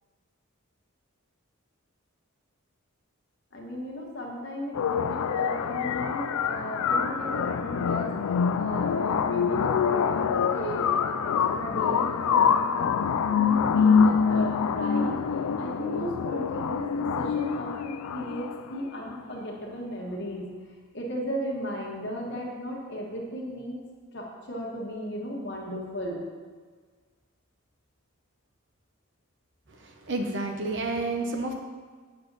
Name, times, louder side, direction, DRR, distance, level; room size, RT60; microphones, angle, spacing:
voice 1, 3.5-8.1 8.5-12.9 13.3-15.2 15.6-20.5 20.9-23.8 24.1-26.2, equal, 50° left, -2 dB, 1.4 m, -35 dB
sound 1, 4.7-18.7, left 6 dB, 80° left, 0.4 m, -25 dB
voice 2, 29.7-31.5, right 2 dB, 55° right, 4 dB, 0.9 m, -30 dB
7.5 x 6.8 x 4.0 m, 1.5 s
head